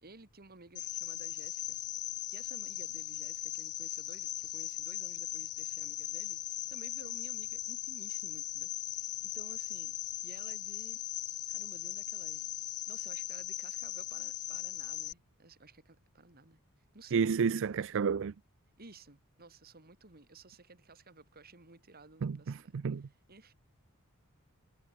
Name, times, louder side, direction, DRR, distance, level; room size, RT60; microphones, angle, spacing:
voice 1, 0.0-1.8 2.3-10.0 10.2-11.0 11.5-12.5 12.9-16.6 16.9-17.3 18.8-23.5, right 3 dB, 45° right, 3.0 m, -55 dB
Cricket, 0.8-15.1, left 15 dB, 80° left, 1.0 m, -39 dB
voice 2, 17.1-18.3 22.2-23.1, right 6 dB, 60° right, 0.4 m, -31 dB
head